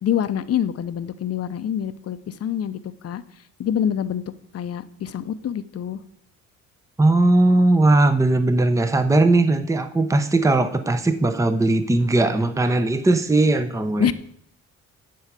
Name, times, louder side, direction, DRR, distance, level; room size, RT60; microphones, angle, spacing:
voice 1, 0.0-3.2 3.6-4.2 4.5-6.0 14.0-14.1, left 9 dB, 55° left, 12 dB, 0.8 m, -26 dB
voice 2, 7.0-14.1, right 2 dB, 10° right, 9 dB, 0.8 m, -18 dB
13.0 x 4.8 x 8.2 m, 0.69 s
cardioid pair, 90°, 30 cm